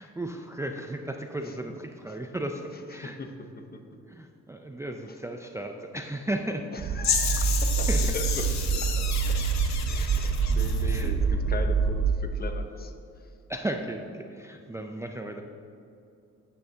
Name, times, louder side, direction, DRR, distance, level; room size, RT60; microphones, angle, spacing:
voice 1, 0.0-3.2 4.1-6.7 7.4-7.5 7.9-8.2 10.8-11.1 13.5-15.4, right 1 dB, 10° right, 4 dB, 0.4 m, -35 dB
voice 2, 2.9-3.3 3.7-3.8 5.1-5.2 6.7-7.9 8.1-9.6 9.8-13.3, left 2 dB, 30° left, 5 dB, 0.8 m, -39 dB
sound 1, 6.8-12.1, right 5 dB, 55° right, 0.7 m, -26 dB
sound 2, 7.0-11.1, left 7 dB, 65° left, 1.0 m, -31 dB
9.0 x 8.9 x 2.8 m, 2.6 s
cardioid pair, 90°, 30 cm